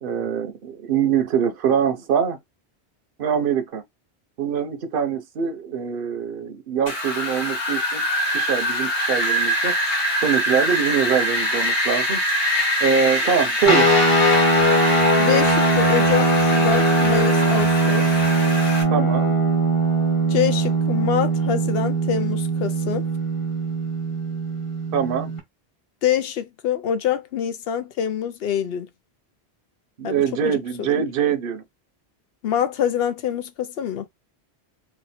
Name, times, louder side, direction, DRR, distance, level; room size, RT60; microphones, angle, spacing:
voice 1, 0.0-2.4 3.2-3.8 4.4-8.0 8.3-9.7 10.2-12.2 12.8-13.9 18.9-19.4 24.9-25.3 30.0-31.6, right 7 dB, 60° right, 0.9 m, -23 dB
Wind, 6.9-18.8, equal, 85° left, 1.6 m, -24 dB
sound 1, 13.7-25.4, right 2 dB, 30° left, 1.2 m, -20 dB
voice 2, 15.2-18.3 20.3-23.1 26.0-28.9 30.0-31.0 32.4-34.1, left 9 dB, 65° left, 0.8 m, -25 dB
3.3 x 2.4 x 4.2 m
omnidirectional pair, 1.1 m